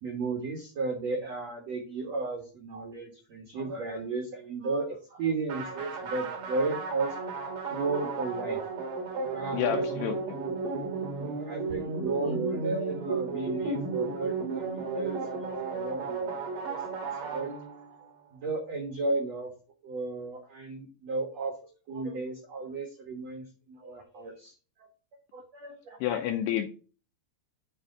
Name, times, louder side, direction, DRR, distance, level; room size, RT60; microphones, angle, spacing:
voice 1, 0.0-7.1 7.7-8.6 9.3-17.5 18.3-19.5 19.8-21.5 21.9-24.5 25.3-26.0, right 3 dB, 85° right, 2 dB, 1.4 m, -34 dB
sound 1, 5.5-18.0, right 4 dB, 55° right, 2.8 m, -34 dB
voice 2, 9.5-10.1 26.0-26.7, left 10 dB, 85° left, 5 dB, 2.3 m, -29 dB
9.6 x 3.5 x 6.5 m, 0.37 s
omnidirectional pair, 5.4 m